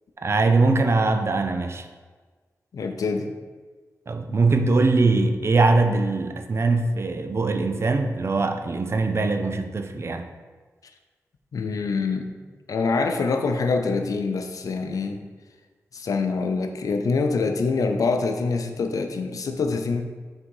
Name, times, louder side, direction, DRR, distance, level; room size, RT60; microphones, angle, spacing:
voice 1, 0.2-1.8 4.1-10.2, right 3 dB, 50° right, 7 dB, 0.5 m, -22 dB
voice 2, 2.7-3.3 11.5-12.4 12.7-15.2 15.9-20.0, left 4 dB, 80° left, 6 dB, 0.6 m, -25 dB
6.3 x 3.8 x 4.7 m, 1.4 s
wide cardioid pair, 80°, 6 cm